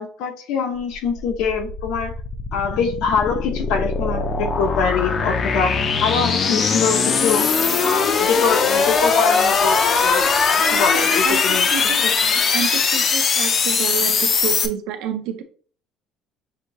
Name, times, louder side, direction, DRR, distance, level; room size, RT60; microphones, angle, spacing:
voice 1, 0.0-2.1 2.5-5.7 6.0-7.5 7.8-11.7 12.0-12.1, left 5 dB, 70° left, 0.8 m, -24 dB
sound 1, 0.9-14.7, left 5 dB, 30° left, 0.4 m, -20 dB
voice 2, 10.3-12.2 12.5-15.4, right 8 dB, 85° right, 0.7 m, -29 dB
5.7 x 2.8 x 2.9 m
cardioid pair, 180°, 0 cm